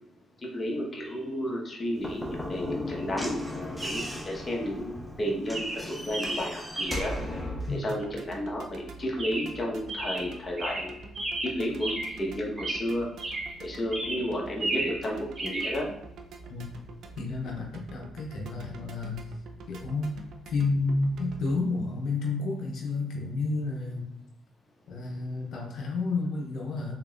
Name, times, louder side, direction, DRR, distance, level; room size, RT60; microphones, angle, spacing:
voice 1, 0.5-4.9 5.2-10.9 11.4-13.1 13.6-15.9, equal, 30° left, -2 dB, 1.1 m, -32 dB
Chirp tweet, 1.0-1.2 3.8-4.2 4.9-5.2 5.5-7.3 9.2-9.6 9.9-12.3 12.6-13.6 13.9-15.1 15.4-15.8, right 2 dB, 35° right, 1.4 m, -34 dB
Slam / Knock, 2.0-7.8, left 1 dB, ahead, 0.9 m, -37 dB
sound 1, 7.9-21.6, right 3 dB, 75° right, 0.5 m, -46 dB
voice 2, 17.2-19.4 19.7-20.2 20.5-24.1 24.9-26.9, left 3 dB, 70° left, -1 dB, 0.7 m, -30 dB
3.8 x 3.7 x 2.4 m, 0.81 s
cardioid pair, 90°, 0 cm